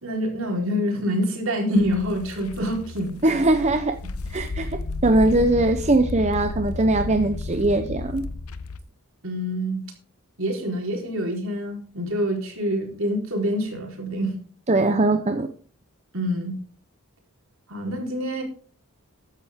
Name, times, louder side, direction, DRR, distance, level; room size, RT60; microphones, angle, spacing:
voice 1, 0.0-3.2 9.2-9.8 10.4-14.4 16.1-16.6 17.7-18.4, equal, 65° right, 1 dB, 4.1 m, -26 dB
sound 1, 1.8-8.8, left 3 dB, 85° left, 0.9 m, -33 dB
voice 2, 3.2-4.0 4.3-8.3 14.7-15.5, right 2 dB, 30° right, 7 dB, 0.7 m, -21 dB
14.0 x 10.0 x 3.6 m, 0.43 s
head